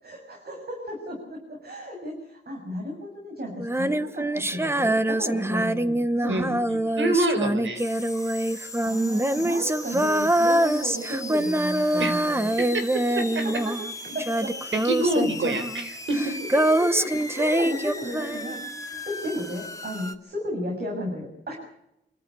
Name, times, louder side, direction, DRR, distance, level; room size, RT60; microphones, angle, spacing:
voice 1, 0.0-6.6 8.8-12.5 13.4-13.8 14.1-14.6 16.5-18.6 19.0-21.5, equal, 55° right, 1 dB, 7.4 m, -33 dB
Female singing, 3.6-13.9 14.2-18.6, right 1 dB, 15° right, 1.2 m, -24 dB
voice 2, 6.3-7.8 12.0-12.1 12.6-12.7 13.1-13.6 14.7-16.4, right 1 dB, 85° right, 7 dB, 5.0 m, -26 dB
sound 1, 7.8-20.2, left 2 dB, 15° left, 2.5 m, -39 dB
26.0 x 14.5 x 8.5 m, 0.83 s
wide cardioid pair, 90°, 19 cm